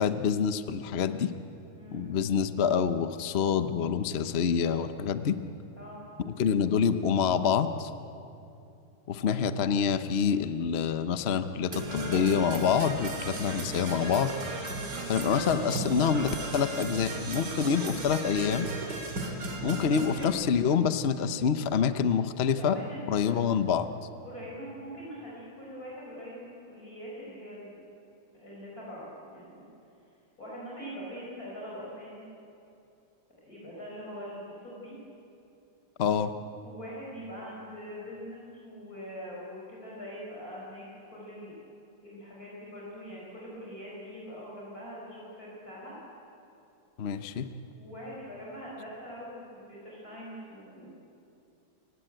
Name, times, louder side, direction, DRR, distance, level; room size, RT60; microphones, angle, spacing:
voice 1, 0.0-1.3 1.9-5.4 6.3-7.9 9.1-14.3 15.1-18.7 19.6-22.8 23.1-23.9 36.0-36.3 47.0-47.5, left 7 dB, 60° left, 10 dB, 0.6 m, -27 dB
Percussion / Brass instrument, 11.7-20.2, right 2 dB, 55° right, 3.1 m, -36 dB
voice 2, 14.9-15.3 19.7-20.3 22.6-23.4 24.2-27.7 28.3-29.6 30.4-32.2 33.4-34.9 36.3-40.8 41.1-41.5 42.0-45.9 47.7-50.9, equal, 45° left, -6 dB, 5.9 m, -43 dB
29.0 x 16.0 x 9.0 m, 2.7 s
omnidirectional pair, 2.3 m